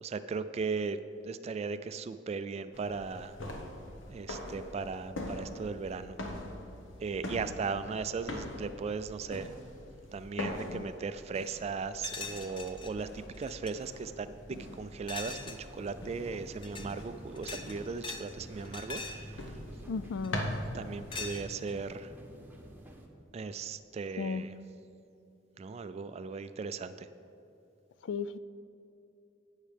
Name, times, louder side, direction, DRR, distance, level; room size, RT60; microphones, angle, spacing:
voice 1, 0.0-1.0 1.2-3.4 4.1-6.2 7.0-9.5 10.1-19.6 20.7-22.1 23.3-24.5 25.6-27.1, right 4 dB, 35° right, 12 dB, 0.3 m, -37 dB
sound 1, 2.7-21.2, left 1 dB, 85° left, 1.2 m, -43 dB
voice 2, 10.4-10.8 19.9-20.4 24.2-24.4 28.0-28.4, left 5 dB, 70° left, 14 dB, 0.3 m, -35 dB
sound 2, 12.0-12.9 13.3-13.7 15.1-15.7 16.5-16.9 17.4-18.3 18.6-19.3 20.2-20.6 21.1-21.8, left 3 dB, 25° left, 0.7 m, -41 dB
sound 3, 15.7-23.1, equal, 10° right, 1.0 m, -50 dB
17.0 x 6.4 x 3.4 m, 2.8 s
head